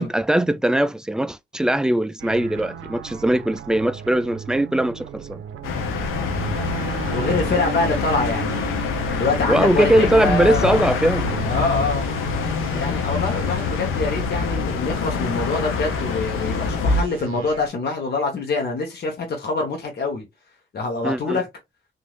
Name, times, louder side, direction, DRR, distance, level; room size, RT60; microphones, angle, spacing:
voice 1, 0.0-5.4 9.5-11.3 21.0-21.4, right 1 dB, 5° right, 0.3 m, -20 dB
sound 1, 2.2-17.7, right 8 dB, 80° right, 0.5 m, -35 dB
sound 2, 5.6-17.0, left 5 dB, 85° left, 0.7 m, -25 dB
voice 2, 7.1-8.8 9.1-10.8 11.5-12.1 12.7-20.3 20.7-21.5, left 3 dB, 50° left, 1.0 m, -25 dB
3.1 x 2.6 x 2.3 m
supercardioid pair, 65°, 21 cm